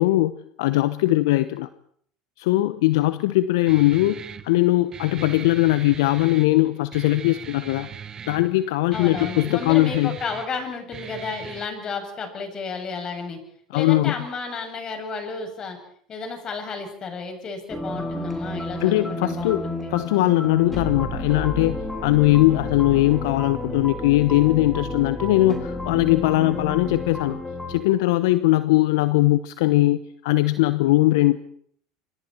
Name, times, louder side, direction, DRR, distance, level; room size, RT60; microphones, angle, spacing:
voice 1, 0.0-1.7 2.4-4.2 4.4-7.9 8.3-10.2 13.7-14.1 18.8-27.4 27.7-31.4, left 17 dB, 70° left, 14 dB, 0.9 m, -20 dB
Guitar, 3.7-11.7, right 7 dB, 30° right, 1.4 m, -40 dB
voice 2, 8.9-13.4 13.7-15.8 16.1-19.9, left 4 dB, 35° left, 4 dB, 7.3 m, -32 dB
sound 1, 17.7-27.8, left 1 dB, 5° left, 4.4 m, -31 dB
27.5 x 25.5 x 4.5 m, 0.62 s
hypercardioid pair, 80°, 2 cm